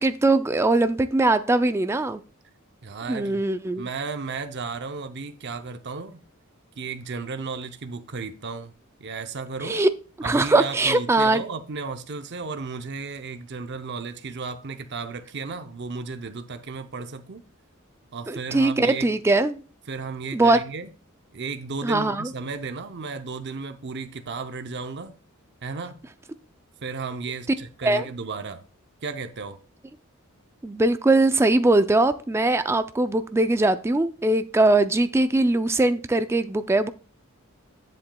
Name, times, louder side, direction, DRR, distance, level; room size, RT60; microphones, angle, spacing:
voice 1, 0.0-2.2 3.1-3.9 9.6-9.9 10.2-11.4 18.3-19.6 20.3-20.6 21.8-22.3 27.8-28.0 30.6-36.9, right 2 dB, 10° right, 0.3 m, -21 dB
voice 2, 2.8-3.4 3.8-6.2 6.8-8.7 9.0-9.8 10.2-17.4 18.1-19.1 19.9-20.9 21.3-25.2 25.6-26.0 26.8-28.6 29.0-29.6, right 4 dB, 55° right, 0.6 m, -34 dB
10.0 x 7.7 x 2.3 m
head